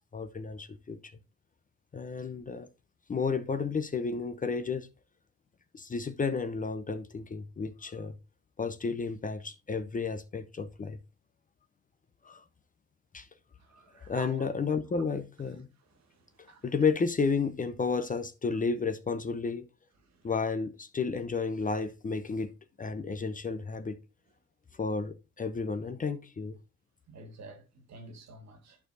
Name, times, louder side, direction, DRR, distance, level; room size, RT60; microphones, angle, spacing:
voice 1, 0.1-1.1 1.9-2.7 3.1-4.9 5.7-8.1 8.6-11.0 12.2-12.4 13.1-13.3 14.1-15.7 16.6-19.6 20.2-22.5 22.8-24.0 24.8-26.6, left 4 dB, 25° left, 0.6 m, -32 dB
voice 2, 13.6-14.5 15.9-16.7 20.0-20.3 27.1-28.8, right 3 dB, 60° right, 1.7 m, -49 dB
11.0 x 4.6 x 2.6 m
cardioid pair, 90°, 30 cm